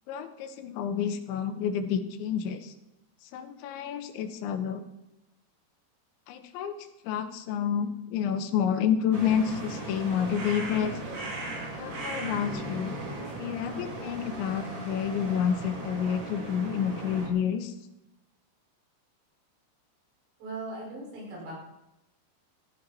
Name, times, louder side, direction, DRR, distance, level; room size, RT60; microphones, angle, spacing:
voice 1, 0.1-2.7 3.3-4.8 6.3-6.8 7.0-10.9 11.8-13.0 13.4-17.7, left 8 dB, 90° left, 8 dB, 3.4 m, -29 dB
sound 1, 9.1-17.3, right 2 dB, 30° right, 2.6 m, -37 dB
voice 2, 20.4-21.5, right 2 dB, 70° right, -3 dB, 7.8 m, -38 dB
15.0 x 14.5 x 4.3 m, 0.92 s
omnidirectional pair, 5.2 m